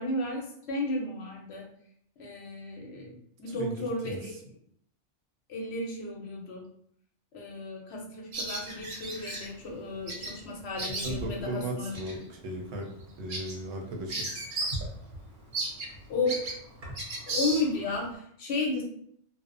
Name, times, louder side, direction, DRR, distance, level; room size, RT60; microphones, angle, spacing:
voice 1, 0.0-1.7 2.2-4.4 5.5-6.6 7.3-12.0 16.1-16.4 17.3-18.8, left 2 dB, 65° left, 0 dB, 0.8 m, -33 dB
Bird vocalization bird call bird song, 8.3-9.5 10.1-10.4 10.6-11.4 11.9-12.1 12.6-12.7 13.0-14.9 15.1-15.2 15.5-18.0, right 2 dB, 50° right, 0.7 m, -35 dB
voice 2, 11.0-12.9 13.2-14.3, right 1 dB, 80° right, 0 dB, 0.9 m, -36 dB
2.5 x 2.0 x 2.5 m, 0.66 s
omnidirectional pair, 1.3 m